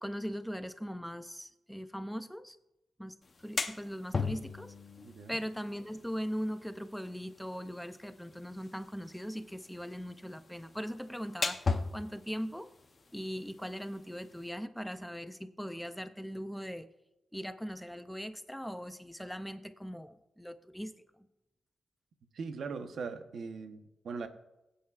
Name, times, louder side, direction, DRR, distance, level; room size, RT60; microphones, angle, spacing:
voice 1, 0.0-2.6 3.0-4.7 5.3-12.7 13.1-16.9 17.3-20.9, equal, ahead, 10 dB, 0.4 m, -40 dB
sound 1, 3.2-14.5, left 4 dB, 30° left, 0.8 m, -40 dB
voice 2, 5.0-5.4 22.3-24.3, right 5 dB, 65° right, 7 dB, 0.9 m, -40 dB
23.0 x 8.5 x 2.4 m, 0.94 s
wide cardioid pair, 160°, 0 cm